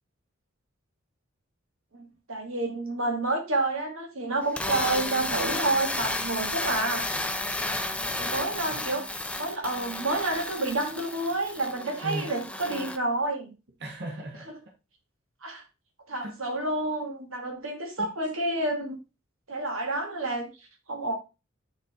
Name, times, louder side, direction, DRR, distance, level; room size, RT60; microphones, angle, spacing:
voice 1, 1.9-7.1 8.2-13.5 15.4-15.6 16.1-19.0 19.5-20.5 20.9-21.1, right 2 dB, 85° right, 2.5 m, -29 dB
sound 1, 4.4-13.0, left 2 dB, 5° left, 0.6 m, -32 dB
voice 2, 7.5-8.3 8.7-8.8 12.0-12.3 13.8-14.5 16.2-16.3 18.0-18.1, right 1 dB, 55° right, 1.6 m, -38 dB
10.5 x 4.4 x 3.7 m
head